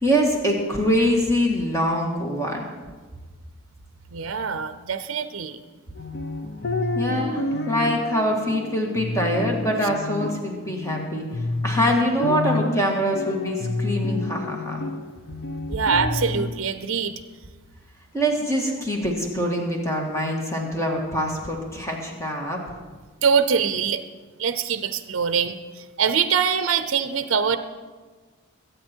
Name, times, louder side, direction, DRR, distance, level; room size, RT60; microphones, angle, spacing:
voice 1, 0.0-2.6 6.9-11.2 11.6-14.8 18.1-22.6, equal, 15° left, 0 dB, 1.8 m, -24 dB
voice 2, 4.1-5.6 15.7-17.1 23.2-24.0 24.4-27.6, right 6 dB, 65° right, 11 dB, 0.6 m, -23 dB
sound 1, 6.0-16.5, left 2 dB, 50° left, 1.0 m, -29 dB
22.5 x 8.7 x 4.5 m, 1.4 s
head